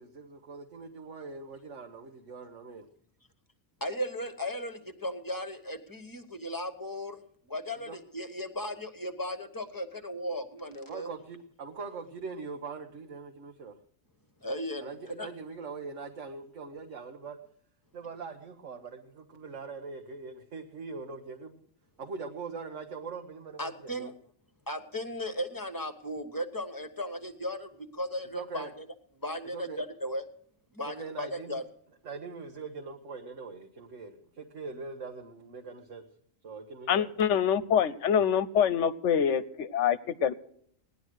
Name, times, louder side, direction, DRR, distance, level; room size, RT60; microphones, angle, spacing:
voice 1, 0.0-2.9 7.9-8.0 10.9-13.8 14.8-17.4 17.9-21.6 22.0-24.1 28.3-28.7 29.5-29.8 31.0-31.6 32.0-36.0 36.4-37.1, right 4 dB, 70° right, 3 dB, 1.5 m, -42 dB
voice 2, 3.8-7.2 7.5-11.1 14.4-15.3 23.6-24.1 24.7-28.9 29.2-30.2 30.7-31.6, equal, 15° left, 8 dB, 1.3 m, -36 dB
voice 3, 36.9-40.3, left 8 dB, 70° left, 16 dB, 1.1 m, -25 dB
18.0 x 11.0 x 6.3 m, 0.64 s
omnidirectional pair, 1.3 m